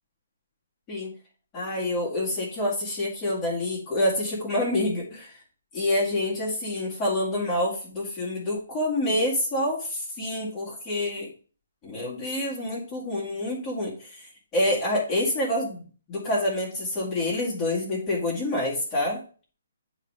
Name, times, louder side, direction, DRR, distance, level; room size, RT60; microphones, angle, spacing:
voice 1, 1.5-5.4 5.7-11.3 11.8-19.2, left 1 dB, 25° left, -6 dB, 2.3 m, -27 dB
9.0 x 3.3 x 4.9 m, 0.40 s
figure-of-eight pair, 140°, 0 cm